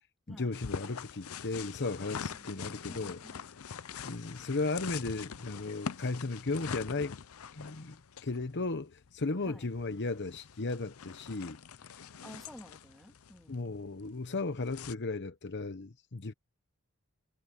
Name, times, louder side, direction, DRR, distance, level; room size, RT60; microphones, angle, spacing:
voice 1, 0.3-3.2 4.0-7.1 7.5-8.0 8.2-11.6 13.5-16.3, left 3 dB, 55° left, 1.0 m, -35 dB
sound 1, 0.5-14.9, left 6 dB, 80° left, 0.6 m, -44 dB
voice 2, 2.6-3.4 9.5-9.6 12.2-13.9, equal, ahead, 3.2 m, -52 dB
head